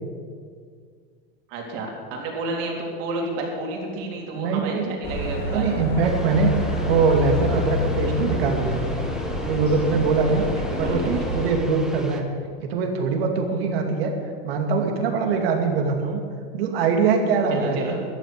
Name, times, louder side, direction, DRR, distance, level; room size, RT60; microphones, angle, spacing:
voice 1, 1.5-5.8 10.3-10.5 10.7-11.1 17.5-17.9, right 2 dB, 50° right, 0 dB, 3.6 m, -31 dB
voice 2, 4.3-4.9 5.5-6.5 6.9-8.8 9.4-10.4 10.7-12.2 12.6-14.1 14.4-16.2 16.5-17.8, right 4 dB, 75° right, 3 dB, 2.6 m, -22 dB
sound 1, 5.0-11.5, left 2 dB, 30° left, 3.6 m, -28 dB
sound 2, 6.0-12.2, right 1 dB, ahead, 1.0 m, -35 dB
13.5 x 9.2 x 8.4 m, 2.1 s
supercardioid pair, 145°, 30 cm